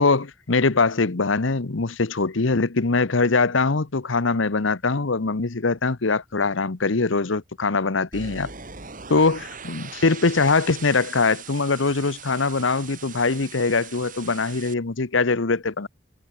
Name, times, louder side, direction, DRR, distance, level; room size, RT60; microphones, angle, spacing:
voice 1, 0.0-8.5 9.1-15.9, left 3 dB, 75° left, 1.0 m, -22 dB
sound 1, 8.1-14.7, right 6 dB, 45° right, 4.1 m, -40 dB
head